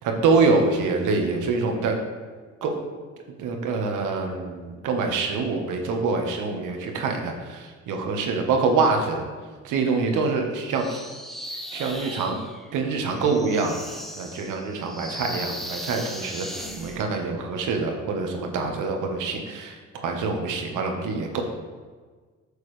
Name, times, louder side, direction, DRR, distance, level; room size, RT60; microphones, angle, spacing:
voice 1, 0.0-2.0 2.6-2.9 3.4-9.2 9.6-11.0 11.5-12.4 12.7-21.4, right 4 dB, 85° right, 3 dB, 1.4 m, -25 dB
sound 1, 10.7-17.0, equal, ahead, 0.9 m, -37 dB
9.7 x 6.8 x 3.3 m, 1.5 s
cardioid pair, 90°, 30 cm